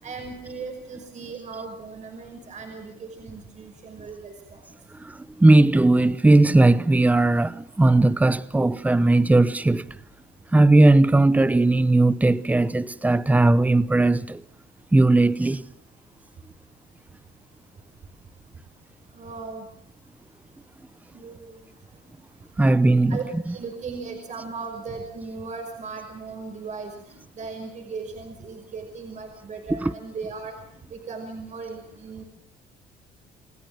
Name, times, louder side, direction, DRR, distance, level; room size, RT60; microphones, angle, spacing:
voice 1, 0.0-4.6 19.1-19.7 21.1-21.6 22.6-22.8 23.1-30.5 30.9-32.2, right 4 dB, 45° right, 5.7 m, -37 dB
voice 2, 5.0-9.9 10.5-14.4 14.9-15.6 22.6-23.2 29.8-29.9, right 2 dB, 10° right, 0.8 m, -18 dB
28.5 x 17.5 x 7.4 m
cardioid pair, 110°, 17 cm